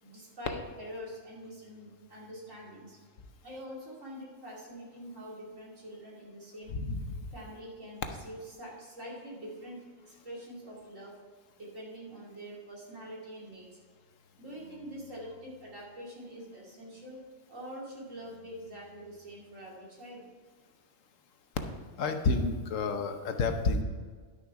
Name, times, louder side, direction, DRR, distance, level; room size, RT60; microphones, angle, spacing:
voice 1, 0.0-3.0 3.4-6.8 7.3-11.2 11.6-13.8 14.4-17.2 17.5-20.3, equal, 80° right, -4 dB, 3.1 m, -45 dB
voice 2, 22.0-23.8, left 3 dB, 85° left, 6 dB, 1.3 m, -29 dB
11.0 x 6.6 x 4.7 m, 1.5 s
omnidirectional pair, 1.3 m